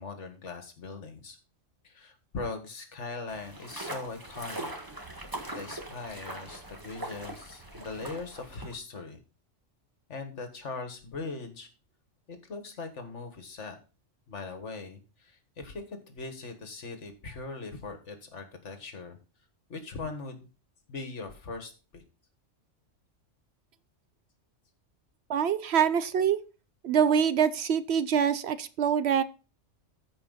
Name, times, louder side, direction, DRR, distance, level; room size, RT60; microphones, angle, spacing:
voice 1, 0.0-1.4 1.8-4.7 5.5-9.2 10.1-11.7 12.3-13.8 14.3-19.2 19.7-20.5 20.9-22.0, left 3 dB, 65° left, 6 dB, 1.8 m, -40 dB
sound 1, 3.3-8.8, right 1 dB, 15° right, 1.4 m, -41 dB
voice 2, 25.3-26.4 26.8-29.2, right 8 dB, 65° right, 14 dB, 0.9 m, -25 dB
14.0 x 5.0 x 4.0 m, 0.35 s
omnidirectional pair, 1.3 m